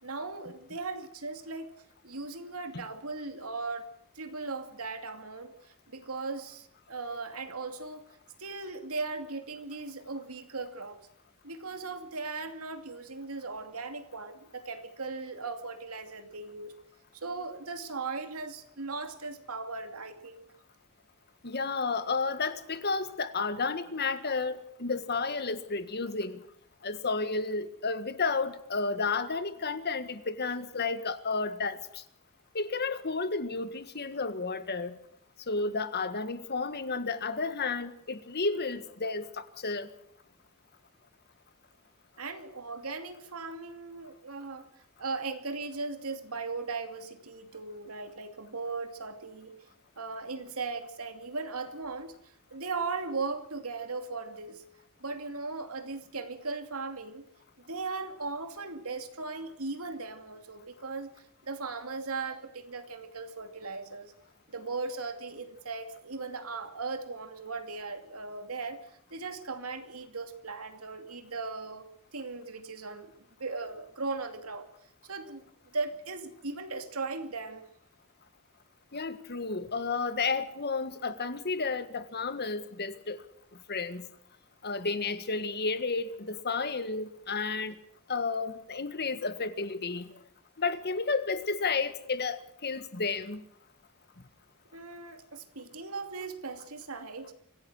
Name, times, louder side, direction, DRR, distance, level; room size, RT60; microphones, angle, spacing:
voice 1, 0.0-1.7 2.0-3.9 4.1-8.0 8.4-11.0 11.4-16.7 17.1-20.5 42.2-44.7 45.0-49.5 50.0-54.6 55.0-57.2 57.7-64.1 64.5-73.1 73.4-74.7 75.1-75.4 75.7-77.6 94.7-97.3, right 3 dB, 85° right, 2.7 m, -38 dB
voice 2, 21.4-26.4 26.8-32.0 32.5-35.0 35.5-39.9 78.9-83.2 83.7-84.1 84.6-87.8 88.1-90.1 90.6-93.4, left 4 dB, 50° left, 1.7 m, -32 dB
25.0 x 17.0 x 6.3 m
head